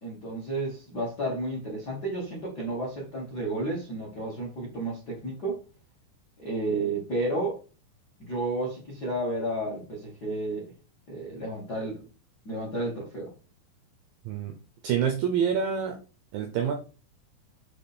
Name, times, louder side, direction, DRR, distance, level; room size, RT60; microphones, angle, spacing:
voice 1, 0.0-5.6 6.4-7.6 8.2-10.7 11.1-12.0 12.4-13.3, right 2 dB, 75° left, 0.9 m, -32 dB
voice 2, 14.3-14.6 14.8-16.0 16.3-16.7, right 7 dB, 85° right, 2.0 m, -26 dB
7.6 x 3.4 x 4.2 m
omnidirectional pair, 4.9 m